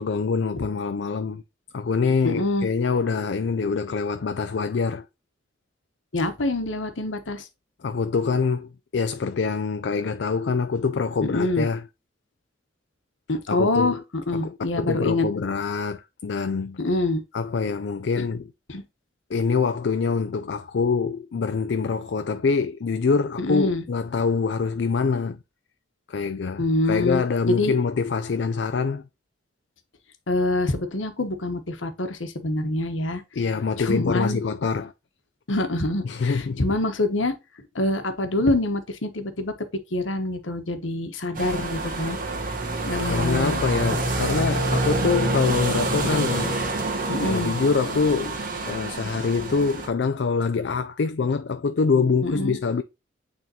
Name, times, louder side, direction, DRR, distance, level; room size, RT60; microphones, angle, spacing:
voice 1, 0.0-1.4 1.7-5.0 7.8-11.9 13.5-14.0 14.3-16.8 17.3-18.5 19.3-25.4 26.1-29.0 33.3-34.9 36.0-36.6 43.0-46.6 47.2-52.8, left 5 dB, 65° left, 0.4 m, -25 dB
voice 2, 2.2-2.7 6.1-7.5 11.2-11.7 13.3-15.3 16.8-17.2 18.2-18.3 18.7-18.8 23.4-23.8 26.6-27.7 30.3-33.2 33.8-34.4 35.5-37.3 37.7-39.5 39.9-42.2 42.8-43.6 43.9-44.0 46.1-46.5 47.1-47.5 52.2-52.6, left 2 dB, 85° left, 1.1 m, -25 dB
sound 1, 41.3-49.9, right 2 dB, 45° right, 1.6 m, -27 dB
9.2 x 3.6 x 2.8 m
head